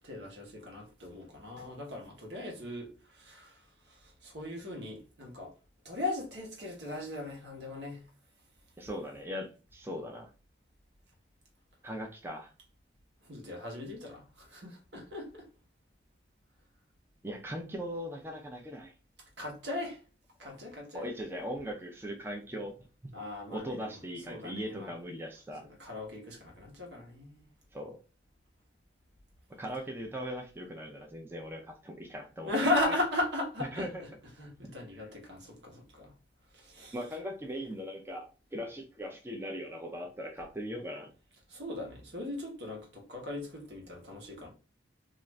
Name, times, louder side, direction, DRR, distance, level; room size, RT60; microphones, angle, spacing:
voice 1, 0.0-2.9 3.1-3.6 4.2-5.5 5.8-8.0 13.2-15.5 19.4-20.0 20.4-21.0 23.1-23.9 24.3-24.9 25.8-27.4 32.4-33.9 34.4-36.1 36.5-36.9 41.5-44.5, left 2 dB, 70° right, 1.0 m, -37 dB
voice 2, 8.8-10.3 11.8-12.5 17.2-18.9 20.4-20.5 20.9-22.8 23.5-25.7 27.7-28.0 29.6-33.0 33.7-34.1 34.6-34.7 36.9-41.1, equal, 10° right, 0.4 m, -39 dB
2.5 x 2.4 x 3.1 m
head